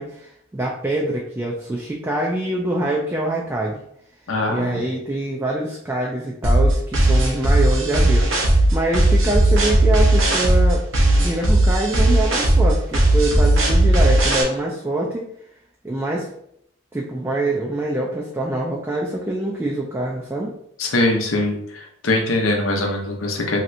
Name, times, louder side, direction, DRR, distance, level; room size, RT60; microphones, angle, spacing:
voice 1, 0.0-3.8 4.5-10.8 11.2-15.3 15.8-16.3 16.9-20.5, right 1 dB, 10° right, -2 dB, 0.3 m, -25 dB
voice 2, 4.3-4.8 20.8-21.6 22.0-23.6, left 2 dB, 85° left, 2 dB, 0.7 m, -21 dB
sound 1, 6.4-14.4, right 1 dB, 75° right, 0.8 m, -16 dB
3.1 x 2.8 x 2.6 m, 0.73 s
head